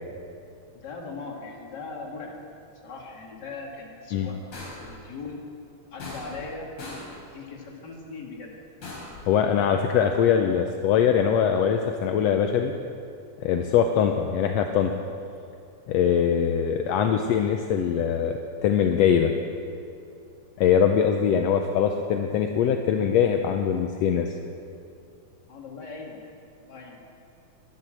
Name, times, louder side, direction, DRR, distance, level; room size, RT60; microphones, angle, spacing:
voice 1, 0.7-2.4 2.8-5.4 5.9-6.7 7.3-8.6 9.9-10.3 16.1-16.3 20.8-21.1 25.5-26.3 26.6-27.0, left 4 dB, 40° left, -1 dB, 2.3 m, -40 dB
sound 1, 4.5-5.0 6.0-6.5 6.8-7.2 8.8-9.3, left 2 dB, 55° left, 5.3 m, -39 dB
voice 2, 9.3-12.7 13.4-14.9 15.9-18.3 18.6-19.3 20.6-24.3, left 8 dB, 75° left, 5 dB, 1.6 m, -22 dB
12.0 x 11.0 x 7.6 m, 2.5 s
omnidirectional pair, 3.4 m